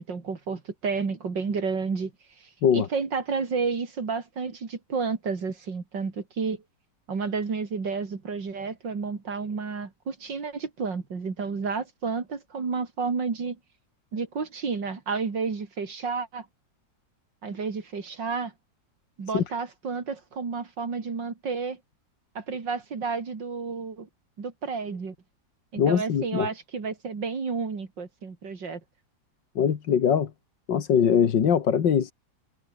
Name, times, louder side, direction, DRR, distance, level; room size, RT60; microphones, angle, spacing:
voice 1, 0.0-6.6 7.1-13.6 14.1-16.5 17.4-18.5 19.2-21.8 22.4-24.1 24.4-25.2 25.7-28.8, right 5 dB, 90° right, 3.7 m, -31 dB
voice 2, 25.8-26.5 29.6-30.3 30.7-32.1, left 8 dB, 90° left, 2.3 m, -22 dB
omnidirectional pair, 1.9 m